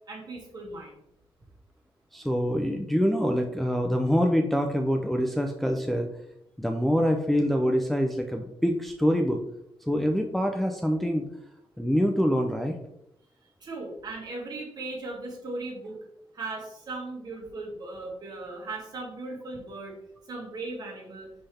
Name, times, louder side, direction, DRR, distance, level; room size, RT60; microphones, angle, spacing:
voice 1, 0.1-1.0 13.6-16.0 16.3-19.9 20.3-21.3, right 2 dB, 45° right, -1 dB, 2.0 m, -37 dB
voice 2, 2.1-6.1 6.6-9.4 9.8-11.3 11.8-12.7, equal, ahead, 3 dB, 0.5 m, -25 dB
5.6 x 5.5 x 3.4 m, 0.80 s
wide cardioid pair, 140°, 10 cm